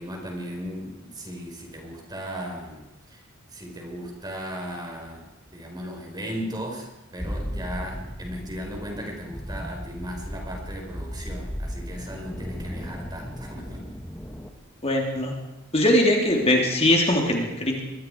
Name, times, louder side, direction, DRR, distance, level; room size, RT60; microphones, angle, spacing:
voice 1, 0.0-3.2 3.5-13.8, equal, 20° right, 1 dB, 4.9 m, -36 dB
sound 1, 7.2-14.5, equal, 10° left, 1.5 m, -36 dB
voice 2, 14.8-15.4 15.7-17.8, left 1 dB, 30° left, 0 dB, 3.4 m, -21 dB
25.5 x 22.5 x 4.9 m, 1.0 s
head